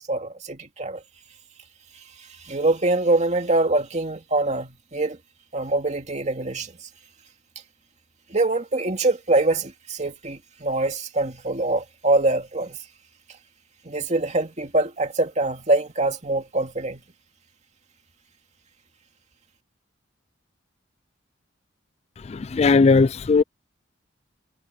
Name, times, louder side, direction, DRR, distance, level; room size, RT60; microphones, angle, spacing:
voice 1, 0.1-1.0 2.4-5.2 5.5-6.7 8.3-12.8 13.8-17.0, right 2 dB, 35° right, 2.5 m, -24 dB
voice 2, 22.2-23.4, left 4 dB, 30° left, 0.3 m, -18 dB
head